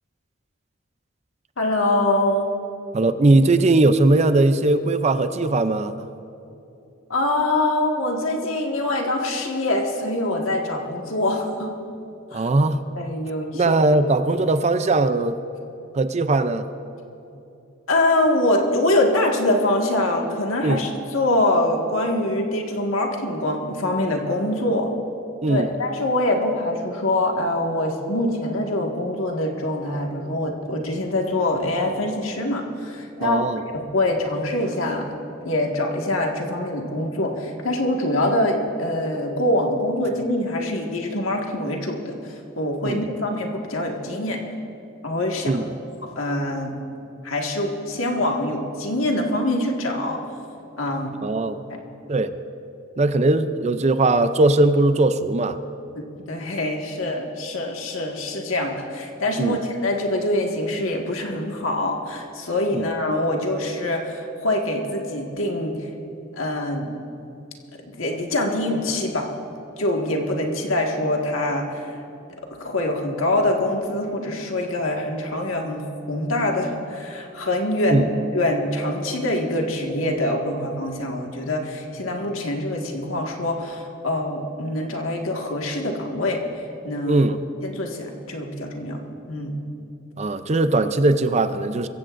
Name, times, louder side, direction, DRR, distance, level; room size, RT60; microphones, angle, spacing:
voice 1, 1.6-2.5 7.1-11.7 12.3-12.5 13.0-13.8 17.9-24.9 25.5-33.4 33.7-35.1 35.4-44.4 45.0-45.5 46.2-46.8 47.2-50.2 50.8-51.1 51.7-51.8 56.0-65.8 66.4-66.9 67.8-69.3 69.8-71.8 72.4-86.4 86.8-87.2 87.6-89.0 89.3-89.6, left 1 dB, 90° left, 1 dB, 1.8 m, -24 dB
voice 2, 2.9-6.1 12.3-12.8 13.5-15.4 15.9-16.7 20.6-20.8 25.4-25.7 33.2-33.6 42.8-43.1 45.5-45.7 51.2-51.6 52.1-52.3 53.0-55.6 59.4-59.6 62.7-62.9 77.9-78.1 87.0-87.4 90.2-91.9, right 2 dB, 35° right, 11 dB, 0.5 m, -19 dB
23.5 x 15.0 x 2.6 m, 2.8 s
head